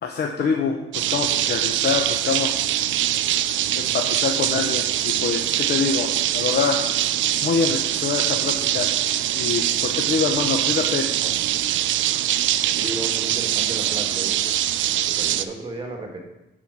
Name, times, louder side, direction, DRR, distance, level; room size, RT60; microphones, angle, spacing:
voice 1, 0.0-2.7 3.7-6.8 7.4-9.0 9.3-11.1, left 5 dB, 55° left, 3 dB, 0.8 m, -25 dB
sound 1, 0.9-15.4, right 12 dB, 75° right, 0.4 m, -23 dB
voice 2, 12.8-14.5 14.9-16.2, right 2 dB, 25° right, 2 dB, 1.6 m, -34 dB
9.7 x 4.5 x 4.6 m, 0.99 s
cardioid pair, 90°, 20 cm